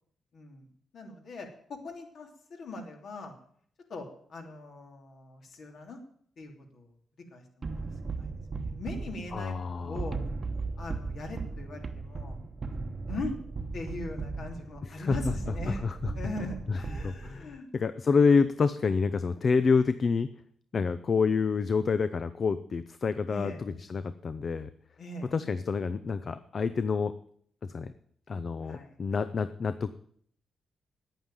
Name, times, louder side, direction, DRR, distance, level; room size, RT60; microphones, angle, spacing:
voice 1, 0.3-0.7 0.9-3.3 3.9-6.0 6.4-6.9 7.3-10.2 10.8-12.4 13.1-13.4 13.7-15.9 16.1-17.7 23.3-23.6 25.0-25.3 28.6-29.0, left 2 dB, 65° left, 2 dB, 3.1 m, -41 dB
sound 1, 7.6-17.6, right 3 dB, 40° right, 1.0 m, -37 dB
voice 2, 9.3-10.0 14.8-15.3 15.7-16.1 16.7-20.3 20.7-24.7 25.3-27.1 27.6-27.9 28.3-29.9, left 5 dB, 45° left, 12 dB, 0.6 m, -28 dB
9.8 x 9.1 x 9.1 m, 0.62 s
cardioid pair, 95°, 0 cm